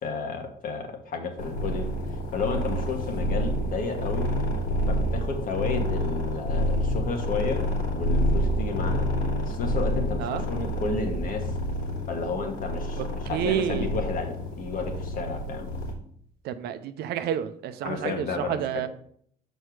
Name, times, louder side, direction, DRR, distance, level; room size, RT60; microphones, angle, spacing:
voice 1, 0.0-1.9 2.3-4.3 4.9-7.6 7.9-9.1 9.4-11.6 12.1-13.0 13.3-15.7 17.8-18.8, left 4 dB, 55° left, 4 dB, 1.4 m, -32 dB
sound 1, 1.4-15.9, equal, 80° left, 2.7 m, -28 dB
voice 2, 13.0-13.9 16.4-18.9, right 9 dB, 75° right, 11 dB, 0.6 m, -29 dB
6.4 x 4.5 x 4.7 m, 0.63 s
cardioid pair, 110°, 17 cm